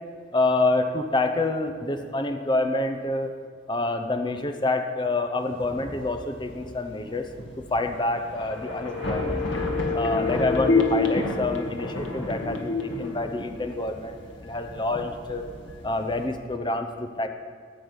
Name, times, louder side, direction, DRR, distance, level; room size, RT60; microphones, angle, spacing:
voice 1, 0.3-3.3 3.7-7.3 7.7-9.4 9.9-15.5 15.8-17.3, left 2 dB, 25° left, 6 dB, 0.8 m, -27 dB
Thunder / Rain, 5.4-16.3, equal, 65° left, 2.5 m, -36 dB
sound 1, 8.5-14.2 14.5-14.6, left 4 dB, 90° left, 1.5 m, -28 dB
14.0 x 5.3 x 8.1 m, 2.1 s
head